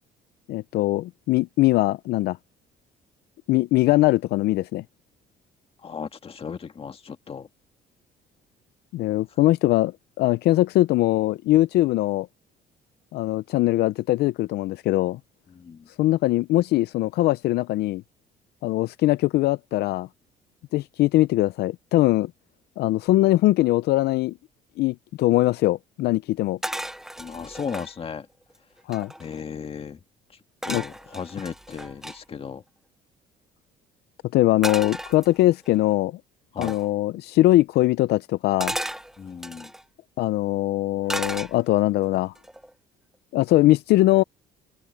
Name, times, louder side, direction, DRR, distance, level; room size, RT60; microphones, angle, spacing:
voice 1, 0.5-2.4 3.5-4.8 8.9-9.9 10.2-12.3 13.1-15.2 16.0-18.0 18.6-20.1 20.7-22.3 22.8-24.3 24.8-26.6 28.9-29.1 30.7-30.8 34.3-36.2 36.6-38.7 40.2-42.3 43.3-44.2, left 16 dB, 75° left, 0.5 m, -21 dB
voice 2, 5.8-7.5 15.5-15.9 27.2-28.3 29.2-30.0 30.6-32.6 36.5-36.8 39.2-39.7, left 6 dB, 35° left, 1.9 m, -35 dB
sound 1, 26.6-27.9 28.5-28.6 28.8-29.4 30.6-32.2 34.6-35.7 36.6-36.9 38.6-39.8 41.1-41.9 42.4-42.7, right 1 dB, ahead, 0.6 m, -34 dB
cardioid pair, 110°, 17 cm